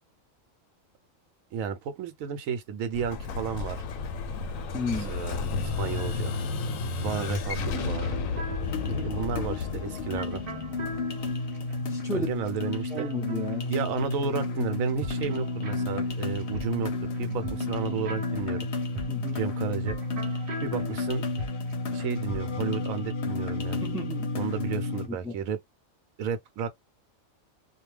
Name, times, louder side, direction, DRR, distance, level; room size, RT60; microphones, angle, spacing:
voice 1, 1.5-3.8 5.1-6.4 7.0-8.1 8.8-10.4 12.1-13.1 13.7-18.7 19.3-20.0 20.6-21.2 21.9-23.8 24.3-25.6 26.2-26.7, right 6 dB, 85° right, 1.0 m, -32 dB
Explosion, 2.9-11.6, left 4 dB, 75° left, 1.0 m, -32 dB
voice 2, 4.7-5.1 11.9-12.3 12.9-13.7 19.1-19.4 23.8-24.3 25.1-25.4, left 1 dB, 5° right, 0.5 m, -33 dB
sound 1, 5.6-14.5 14.7-22.6, equal, 45° right, 0.9 m, -42 dB
sound 2, 8.6-25.1, left 3 dB, 55° left, 0.9 m, -32 dB
2.4 x 2.2 x 3.1 m
omnidirectional pair, 1.4 m